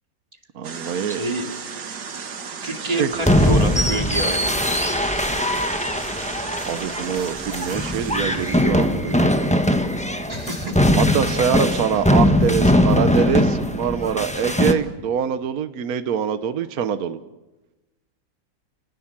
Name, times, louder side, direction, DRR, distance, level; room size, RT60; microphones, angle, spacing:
voice 1, 0.5-1.2 2.8-3.1 6.7-9.3 10.9-17.2, right 8 dB, 65° right, 11 dB, 1.4 m, -24 dB
sound 1, 0.6-8.6, right 6 dB, 80° right, 2.2 m, -34 dB
voice 2, 1.1-1.6 2.6-4.9 10.3-11.0, right 1 dB, 25° right, 3 dB, 2.6 m, -28 dB
sound 2, 3.2-14.7, left 1 dB, 5° left, 1.1 m, -20 dB
30.0 x 19.0 x 7.5 m, 1.1 s
omnidirectional pair, 1.7 m